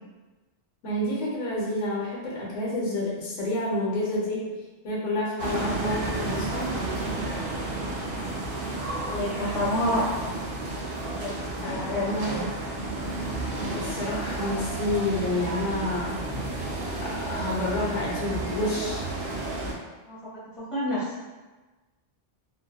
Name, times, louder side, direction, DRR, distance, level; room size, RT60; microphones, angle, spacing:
voice 1, 0.8-4.5 4.8-6.7 9.4-10.0 11.6-12.5 13.6-16.2 17.0-19.1, left 1 dB, 85° left, -5 dB, 1.0 m, -29 dB
sound 1, 5.4-19.7, right 2 dB, 60° right, 0.6 m, -32 dB
voice 2, 8.9-10.1 11.1-12.4 20.1-20.3 20.6-21.0, left 1 dB, ahead, -12 dB, 1.0 m, -29 dB
2.5 x 2.5 x 2.2 m, 1.2 s
omnidirectional pair, 1.2 m